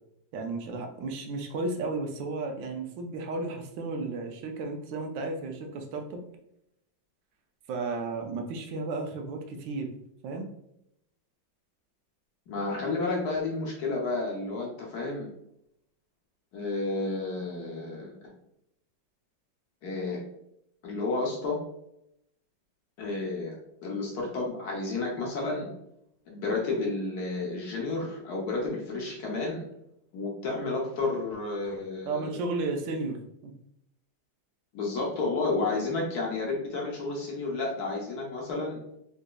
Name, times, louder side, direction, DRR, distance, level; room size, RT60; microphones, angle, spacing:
voice 1, 0.3-6.2 7.7-9.9 10.2-10.5 32.0-33.5, right 3 dB, 80° right, 4 dB, 1.3 m, -33 dB
voice 2, 12.5-15.3 16.5-18.3 19.8-20.2 20.8-21.6 23.0-23.5 23.8-25.7 26.3-29.6 30.1-32.4 34.7-38.8, left 3 dB, 65° left, -2 dB, 1.1 m, -31 dB
3.9 x 2.6 x 2.2 m, 0.78 s
omnidirectional pair, 2.0 m